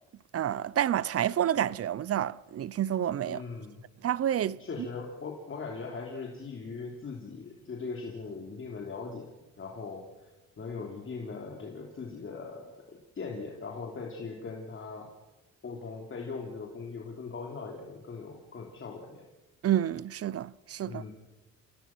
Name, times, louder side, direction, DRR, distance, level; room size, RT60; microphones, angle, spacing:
voice 1, 0.3-3.4 4.0-4.6 19.6-21.0, right 11 dB, 50° right, 0.7 m, -29 dB
voice 2, 3.2-3.8 4.6-15.1 15.6-19.2 20.8-21.1, left 4 dB, 40° left, 3.5 m, -40 dB
28.5 x 17.0 x 6.2 m
cardioid pair, 90°, 30 cm